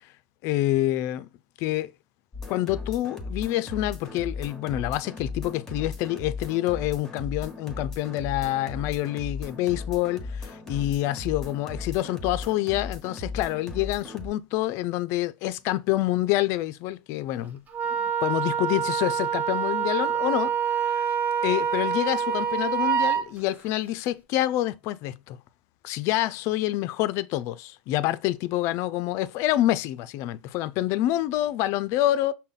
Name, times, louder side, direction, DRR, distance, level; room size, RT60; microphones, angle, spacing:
voice 1, 0.4-1.3 1.6-1.9 2.5-17.6 18.0-21.1 21.4-25.4 25.8-32.3, left 15 dB, 60° left, 0.4 m, -27 dB
sound 1, 2.3-14.3, left 3 dB, 10° left, 1.2 m, -37 dB
Wind instrument woodwind instrument, 17.7-23.2, right 8 dB, 30° right, 0.6 m, -26 dB
5.5 x 2.1 x 3.7 m
hypercardioid pair, 100°, 5 cm